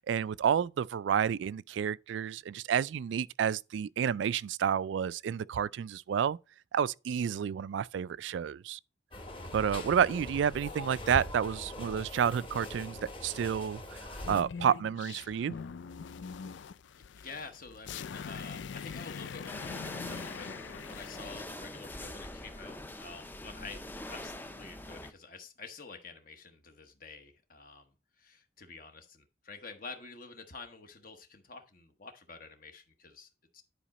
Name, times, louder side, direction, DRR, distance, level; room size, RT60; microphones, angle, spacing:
voice 1, 0.0-6.4 6.7-8.8 9.5-15.6, right 8 dB, 75° right, 0.3 m, -30 dB
sound 1, 9.1-14.4, left 1 dB, 30° left, 1.3 m, -42 dB
sound 2, 14.1-21.5, left 6 dB, 75° left, 0.4 m, -43 dB
voice 2, 17.0-33.6, left 4 dB, 45° left, 1.0 m, -48 dB
sound 3, 19.5-25.1, left 1 dB, 10° left, 0.5 m, -44 dB
10.0 x 4.9 x 4.1 m
head